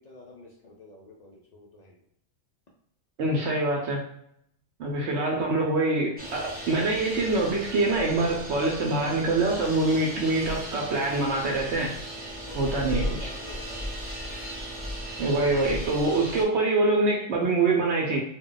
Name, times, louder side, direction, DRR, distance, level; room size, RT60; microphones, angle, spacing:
voice 1, 0.0-2.0 12.5-12.6 12.9-13.9, left 2 dB, 70° left, -2 dB, 0.4 m, -48 dB
voice 2, 3.2-4.0 4.8-12.0 12.5-13.3 15.2-18.2, right 2 dB, 65° right, -1 dB, 0.8 m, -25 dB
sound 1, 6.2-16.4, equal, 10° right, 0.5 m, -36 dB
2.2 x 2.2 x 3.7 m, 0.73 s
omnidirectional pair, 1.3 m